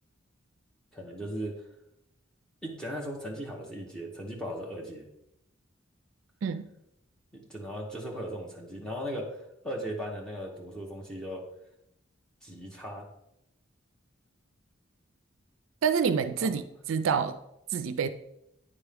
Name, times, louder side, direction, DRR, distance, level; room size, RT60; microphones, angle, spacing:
voice 1, 0.9-1.6 2.6-5.1 7.3-11.4 12.4-13.1 16.4-16.5, equal, 5° left, -2 dB, 1.0 m, -37 dB
voice 2, 15.8-16.6 16.9-17.4 17.7-18.1, right 6 dB, 75° right, 11 dB, 0.4 m, -27 dB
9.6 x 3.5 x 3.4 m, 0.81 s
head